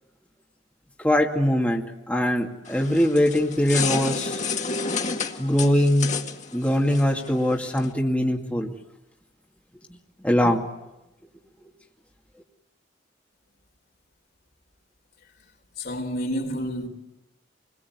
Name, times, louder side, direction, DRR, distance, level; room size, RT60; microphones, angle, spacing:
voice 1, 1.0-4.4 5.4-6.2 6.5-8.7 10.2-10.6, equal, 10° left, 2.3 m, -22 dB
sound 1, 2.7-7.9, left 5 dB, 40° left, 2.0 m, -30 dB
voice 2, 15.8-16.9, equal, 60° left, 4.4 m, -29 dB
28.0 x 22.0 x 9.7 m
head